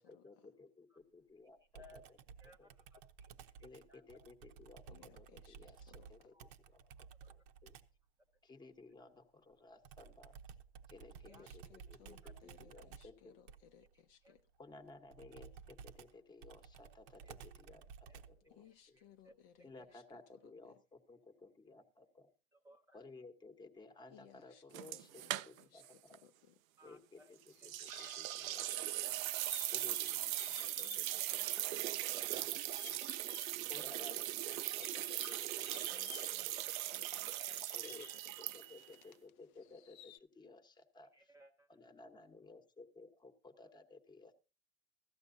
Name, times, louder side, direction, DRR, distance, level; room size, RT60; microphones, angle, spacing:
voice 1, 0.0-2.0 2.6-2.7 3.6-7.8 8.4-10.4 10.9-13.3 14.6-19.0 19.6-22.3 22.9-26.2 26.8-29.1 29.7-32.6 32.8-32.9 33.7-36.3 37.7-38.1 38.4-41.3 41.7-44.3, left 3 dB, 10° left, 1.1 m, -57 dB
Computer keyboard, 1.7-8.0 9.8-18.5, right 7 dB, 45° right, 0.9 m, -56 dB
voice 2, 2.4-3.3 3.6-4.2 6.3-6.5 7.2-7.3 11.3-11.5 12.2-12.3 12.7-12.9 14.2-14.4 17.2-17.3 18.1-18.2 18.6-19.4 19.8-19.9 22.5-23.0 26.8-27.3 27.6-27.7 29.3-29.4 32.3-32.5 32.8-32.9 33.9-34.1 36.7-37.6 37.9-38.2 41.1-41.8, left 2 dB, 10° right, 0.6 m, -64 dB
voice 3, 4.9-6.3 11.2-14.4 18.5-20.0 20.4-20.7 24.1-26.5 30.4-31.0 31.3-32.3 35.9-37.8 38.3-38.4, left 9 dB, 45° left, 0.7 m, -64 dB
sound 1, 24.7-25.9 26.1-26.2 27.6-38.9, right 14 dB, 80° right, 0.5 m, -39 dB
sound 2, 27.5-31.7 31.9-39.3 39.6-40.2, left 12 dB, 85° left, 0.6 m, -57 dB
16.0 x 13.5 x 2.6 m
hypercardioid pair, 130°, 40 cm